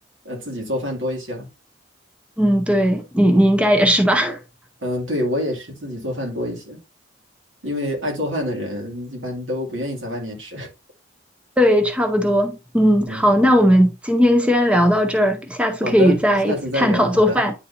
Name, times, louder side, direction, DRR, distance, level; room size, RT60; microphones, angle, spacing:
voice 1, 0.2-1.5 4.8-6.8 7.6-10.7 13.1-13.3 15.8-16.2 16.5-17.4, left 1 dB, 80° right, 2.3 m, -27 dB
voice 2, 2.4-4.4 11.6-17.5, equal, 5° right, 0.6 m, -17 dB
9.7 x 4.2 x 2.6 m
head